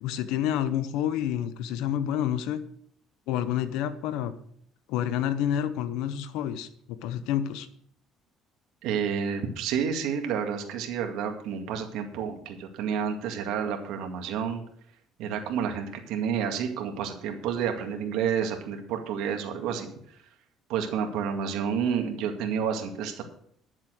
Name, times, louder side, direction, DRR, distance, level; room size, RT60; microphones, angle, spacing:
voice 1, 0.0-2.6 3.3-4.3 4.9-7.7, left 10 dB, 85° left, 12 dB, 0.9 m, -29 dB
voice 2, 8.8-14.6 15.2-20.2 20.7-23.2, right 7 dB, 80° right, 4 dB, 2.1 m, -30 dB
11.5 x 7.4 x 6.4 m, 0.67 s
cardioid pair, 120°, 0 cm